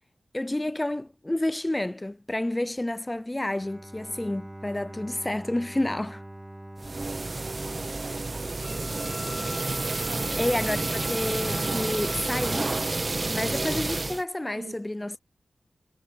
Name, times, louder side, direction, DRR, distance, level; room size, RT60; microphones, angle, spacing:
voice 1, 0.3-6.2 9.8-10.1 10.4-12.7 13.3-15.2, left 1 dB, 15° left, 0.4 m, -30 dB
Bowed string instrument, 3.5-8.8, right 1 dB, 10° right, 2.3 m, -45 dB
sound 1, 6.8-14.2, right 3 dB, 35° right, 0.8 m, -30 dB
voice 2, 7.7-8.5 10.1-10.3 14.6-14.7, right 4 dB, 65° right, 2.0 m, -43 dB
Wind instrument woodwind instrument, 8.6-12.6, left 4 dB, 50° left, 5.2 m, -43 dB
wide cardioid pair, 100°, 0 cm